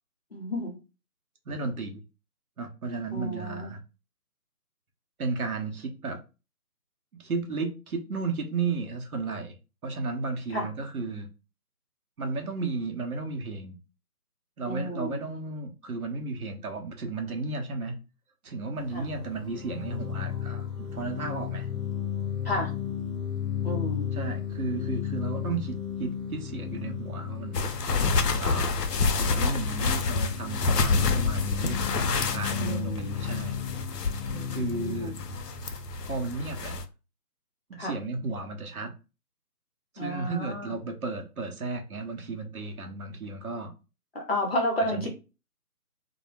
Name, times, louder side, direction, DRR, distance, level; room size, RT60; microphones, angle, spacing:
voice 1, 0.3-0.7 3.1-3.7 10.5-10.7 14.7-15.2 18.9-19.0 22.4-22.7 23.6-24.1 32.6-33.1 34.3-35.1 37.8-38.0 40.0-40.7 44.1-45.1, equal, 40° left, 0.7 m, -31 dB
voice 2, 1.5-2.0 2.6-3.8 5.2-6.2 7.2-9.6 9.8-11.3 12.2-13.8 14.6-18.0 18.4-21.7 24.1-27.7 28.4-28.7 29.2-33.6 34.5-35.1 36.0-36.8 37.7-38.9 39.9-43.7 44.8-45.1, right 3 dB, 65° right, 0.7 m, -34 dB
sound 1, 18.8-36.4, left 9 dB, 5° left, 1.2 m, -34 dB
sound 2, 27.5-36.8, left 4 dB, 90° left, 0.6 m, -28 dB
2.1 x 2.0 x 3.1 m
figure-of-eight pair, 160°, 47 cm